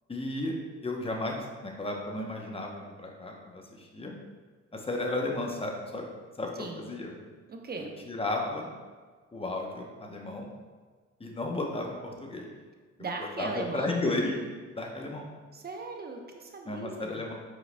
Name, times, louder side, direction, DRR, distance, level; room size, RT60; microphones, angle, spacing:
voice 1, 0.1-0.5 0.8-4.1 4.7-6.0 6.4-7.1 8.1-8.7 9.3-10.5 11.2-12.5 13.4-14.3 14.7-15.3 16.7-17.3, left 2 dB, 20° left, 1 dB, 0.8 m, -33 dB
voice 2, 6.5-6.9 7.5-7.9 13.0-13.9 15.5-17.3, right 3 dB, 30° right, 2 dB, 0.7 m, -38 dB
5.0 x 4.6 x 2.2 m, 1.4 s
cardioid pair, 90°, 30 cm